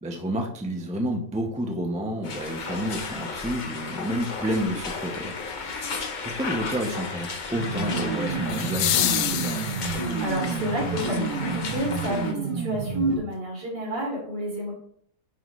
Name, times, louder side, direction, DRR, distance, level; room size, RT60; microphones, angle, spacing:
voice 1, 0.0-9.4, equal, 5° right, 1 dB, 0.5 m, -30 dB
sound 1, 2.2-12.3, left 4 dB, 55° left, 0.5 m, -34 dB
sound 2, 2.9-3.0 8.5-10.3 12.5-12.6, left 11 dB, 70° left, 0.9 m, -27 dB
sound 3, 7.5-13.2, right 4 dB, 55° right, 1.4 m, -30 dB
voice 2, 9.9-14.7, equal, 70° right, -4 dB, 3.2 m, -30 dB
10.0 x 3.9 x 3.2 m, 0.65 s
omnidirectional pair, 1.9 m